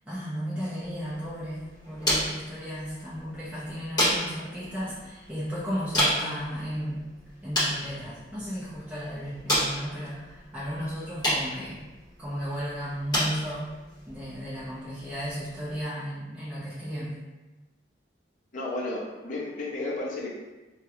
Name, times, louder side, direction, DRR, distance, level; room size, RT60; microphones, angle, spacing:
voice 1, 0.1-7.0 7.4-11.8 12.2-13.7 14.1-17.2, equal, 10° right, -10 dB, 0.6 m, -34 dB
sound 1, 0.8-15.9, equal, 20° left, 1.5 m, -33 dB
voice 2, 18.5-20.3, left 2 dB, 45° left, -5 dB, 0.5 m, -33 dB
3.0 x 2.3 x 2.9 m, 1.1 s
head